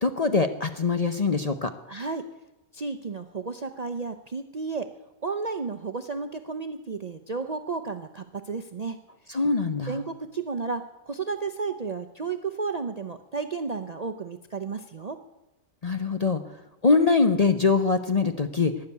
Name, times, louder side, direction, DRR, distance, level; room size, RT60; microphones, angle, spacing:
voice 1, 0.0-1.7 9.3-10.0 15.8-16.4 16.8-18.7, left 4 dB, 40° left, 8 dB, 0.6 m, -23 dB
voice 2, 1.9-2.3 2.7-4.9 5.2-9.0 9.9-15.2, right 4 dB, 45° right, 8 dB, 0.5 m, -32 dB
12.5 x 10.5 x 9.4 m, 0.98 s
omnidirectional pair, 1.4 m